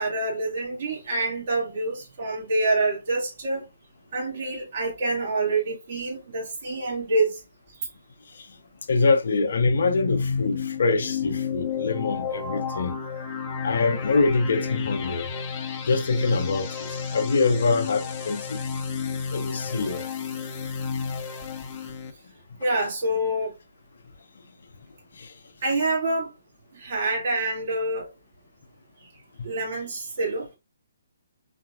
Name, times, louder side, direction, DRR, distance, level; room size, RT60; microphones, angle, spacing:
voice 1, 0.0-3.7 4.1-7.4 7.8-7.9 22.6-23.5 25.6-26.3 26.7-28.1 29.4-30.6, right 2 dB, 50° right, 2.2 m, -26 dB
voice 2, 8.9-13.0 13.6-15.3 15.8-18.6 19.3-20.0 25.2-25.3 29.4-29.5, left 3 dB, 55° left, 0.7 m, -24 dB
sound 1, 9.6-22.1, left 6 dB, 25° left, 0.7 m, -31 dB
4.2 x 3.8 x 2.4 m
figure-of-eight pair, 135°, 0 cm